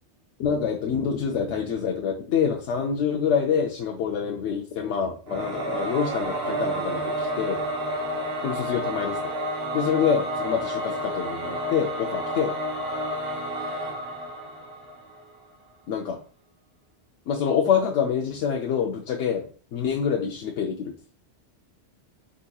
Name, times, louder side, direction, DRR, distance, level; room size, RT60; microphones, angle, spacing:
voice 1, 0.4-7.6 8.4-9.2 9.7-12.5 15.9-16.2 17.3-20.9, left 7 dB, 90° left, 1 dB, 0.9 m, -26 dB
Singing / Musical instrument, 5.3-15.3, equal, 60° right, 1.3 m, -30 dB
4.8 x 4.0 x 2.3 m, 0.40 s
omnidirectional pair, 1.2 m